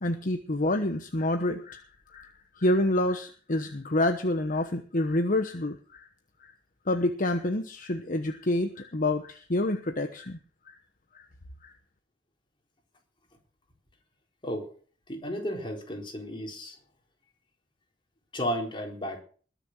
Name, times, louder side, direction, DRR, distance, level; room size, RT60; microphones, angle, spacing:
voice 1, 0.0-1.8 2.1-6.1 6.4-6.5 6.9-10.4 10.7-10.8 11.6-11.7, left 1 dB, 45° left, 7 dB, 1.1 m, -28 dB
voice 2, 15.1-16.8 18.3-19.2, equal, 25° left, 1 dB, 4.2 m, -33 dB
21.0 x 7.1 x 6.3 m, 0.42 s
head